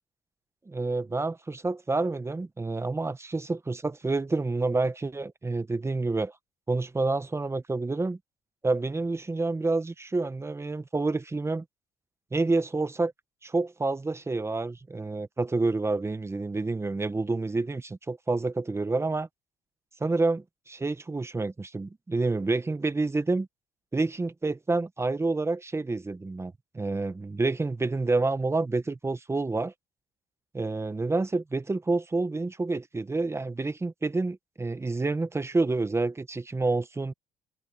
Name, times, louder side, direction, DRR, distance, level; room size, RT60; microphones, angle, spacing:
voice 1, 0.7-6.3 6.7-8.2 8.6-11.6 12.3-13.1 13.4-19.3 20.0-23.5 23.9-29.7 30.5-37.1, right 3 dB, 15° right, 1.0 m, -28 dB
cardioid pair, 110°, 17 cm